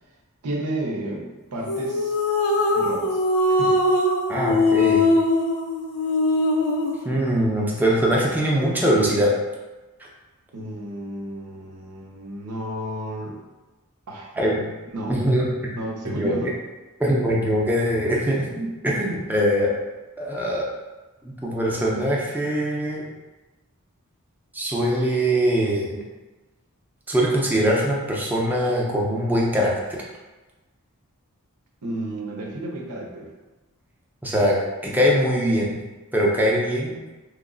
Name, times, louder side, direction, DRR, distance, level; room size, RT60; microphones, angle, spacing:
voice 1, 0.4-2.2 2.7-3.2 3.5-3.8 10.5-13.4 14.1-14.3 14.9-15.2 15.8-16.5 19.1-19.2 31.8-33.3, right 1 dB, 85° right, -1 dB, 0.7 m, -32 dB
sound 1, 1.7-7.0, left 2 dB, 70° left, 0.4 m, -21 dB
voice 2, 4.3-5.1 7.0-9.3 14.4-14.6 15.1-15.7 16.0-16.5 17.0-19.7 20.2-20.7 21.2-23.0 24.5-26.0 27.1-30.0 34.2-34.6 34.8-35.8 36.1-37.0, equal, 10° right, -4 dB, 0.5 m, -22 dB
3.0 x 2.0 x 3.7 m, 1.2 s
head